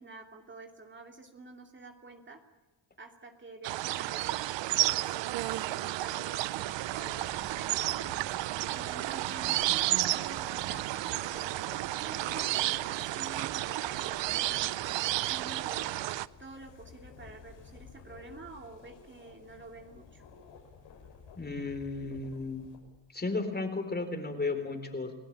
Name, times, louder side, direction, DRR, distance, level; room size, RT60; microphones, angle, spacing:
voice 1, 0.0-2.4 3.0-8.1 8.7-10.8 11.2-16.0 16.4-20.2, right 3 dB, 25° right, 3 dB, 2.7 m, -48 dB
sound 1, 3.6-16.3, right 16 dB, 85° right, 0.7 m, -32 dB
sound 2, 6.8-22.8, left 6 dB, 80° left, 7.1 m, -53 dB
voice 2, 21.4-22.7 23.1-25.1, left 3 dB, 20° left, 8 dB, 3.8 m, -34 dB
30.0 x 18.5 x 8.9 m, 1.1 s
cardioid pair, 125°, 43 cm